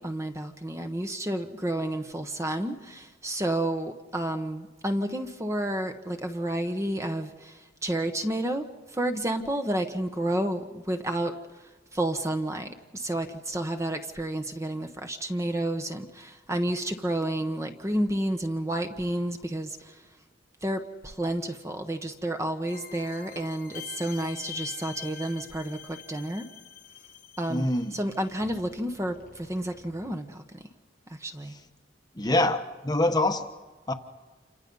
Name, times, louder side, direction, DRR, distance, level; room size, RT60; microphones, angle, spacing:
voice 1, 0.0-8.6 8.9-11.3 11.9-20.0 20.6-26.5 27.4-30.6 31.1-31.5, right 1 dB, 15° right, 1.2 m, -30 dB
sound 1, 22.7-30.2, left 8 dB, 50° left, 1.2 m, -45 dB
voice 2, 27.5-28.0 31.5-31.6 32.1-33.5 33.9-34.0, left 1 dB, 20° left, 1.2 m, -25 dB
28.5 x 25.5 x 5.5 m
head